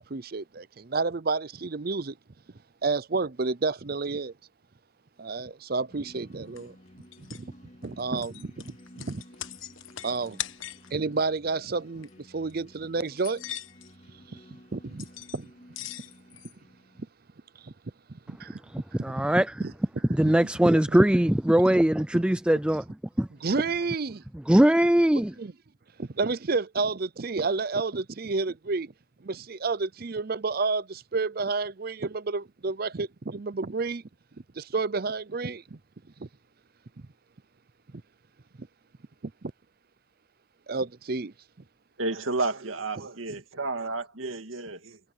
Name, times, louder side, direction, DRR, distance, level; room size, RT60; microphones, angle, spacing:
voice 1, 0.0-2.2 2.8-4.3 5.2-6.7 7.3-7.4 7.8-9.2 10.0-10.4 10.9-13.4 14.3-14.4 14.7-15.1 15.3-15.5 17.6-17.7 18.1-18.6 19.1-19.2 19.6-19.7 20.2-20.4 20.7-21.0 22.1-22.2 23.4-24.2 25.4-25.5 26.0-28.9 29.2-34.0 34.6-35.8 36.2-36.3 38.6-38.7 39.4-39.5 40.7-41.3, right 4 dB, 50° right, 0.6 m, -30 dB
sound 1, 5.9-17.1, equal, 35° left, 3.8 m, -53 dB
sound 2, 6.6-6.7 7.1-7.4 7.8-10.9 11.9-12.1 12.5-12.6 13.1-13.9 15.0-15.4 15.7-16.5, left 11 dB, 80° left, 1.2 m, -40 dB
voice 2, 19.0-19.6 20.1-22.8 23.2-23.3 24.5-25.3, right 1 dB, 5° right, 0.3 m, -21 dB
voice 3, 42.0-45.0, right 3 dB, 85° right, 2.2 m, -31 dB
head